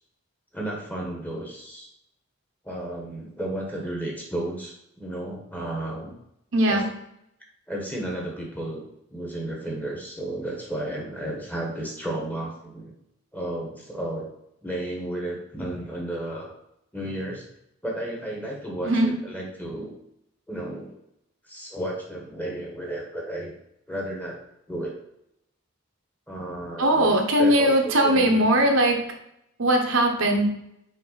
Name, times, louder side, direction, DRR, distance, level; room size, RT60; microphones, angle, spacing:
voice 1, 0.5-1.9 2.6-6.1 6.7-6.8 7.7-8.8 9.1-12.9 13.3-14.3 14.6-16.5 16.9-17.4 17.8-19.9 20.5-20.9 21.4-23.5 23.9-24.4 24.7-25.0 26.3-28.5, right 1 dB, 5° left, -2 dB, 1.2 m, -33 dB
voice 2, 6.5-6.8 18.8-19.1 26.8-29.0 29.6-30.4, right 1 dB, 65° right, 2 dB, 1.0 m, -20 dB
5.4 x 4.6 x 4.1 m, 0.80 s
head